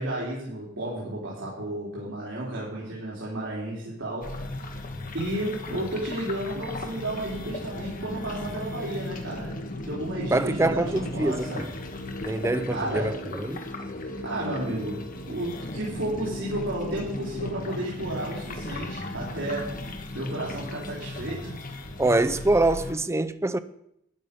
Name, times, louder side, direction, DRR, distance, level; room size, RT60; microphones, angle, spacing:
voice 1, 0.0-4.4 5.1-9.6 9.8-11.7 12.7-13.2 14.2-19.8 20.1-21.6, right 1 dB, 85° right, 3.9 m, -32 dB
sound 1, 4.2-22.9, left 1 dB, 45° left, 1.5 m, -36 dB
voice 2, 10.3-11.6 12.3-13.6 22.0-23.6, right 2 dB, 15° right, 0.5 m, -25 dB
12.0 x 10.0 x 5.4 m
head